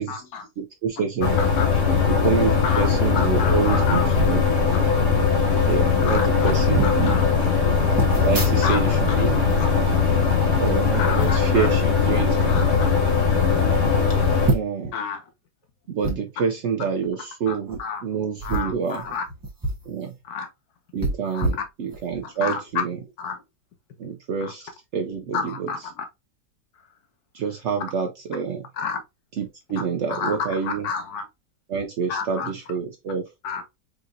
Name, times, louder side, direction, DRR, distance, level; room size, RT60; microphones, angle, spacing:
voice 1, 0.0-0.5 1.2-1.7 2.5-4.4 4.7-4.8 6.0-6.5 6.8-7.5 8.6-9.7 11.0-11.7 12.5-12.9 14.9-15.2 17.5-18.0 18.4-19.2 20.3-20.5 21.3-21.5 22.4-22.6 23.2-23.4 24.4-24.5 25.3-26.0 28.7-29.0 29.8-31.2 32.1-32.5 33.4-33.6, left 6 dB, 65° left, 1.4 m, -31 dB
voice 2, 0.6-1.4 2.1-4.4 5.6-7.2 8.2-9.4 10.6-12.6 14.5-14.9 15.9-19.0 19.9-20.1 20.9-23.1 24.0-25.9 27.3-28.7 29.3-30.9 31.7-33.3, right 6 dB, 85° right, 0.6 m, -27 dB
sound 1, 1.2-14.5, left 5 dB, 45° left, 1.4 m, -20 dB
sound 2, 4.1-4.4 5.3-5.4 5.6-5.8 6.4-7.0 8.0-9.0 9.3-10.7 11.2-11.5 12.3-12.7 13.2-13.3 13.6-13.7 14.4-14.9 16.0-16.2 17.6-17.8 18.4-19.9 20.2-20.3 21.0-22.2 22.7-22.8, right 2 dB, 20° right, 0.7 m, -28 dB
5.0 x 2.9 x 2.5 m
omnidirectional pair, 1.9 m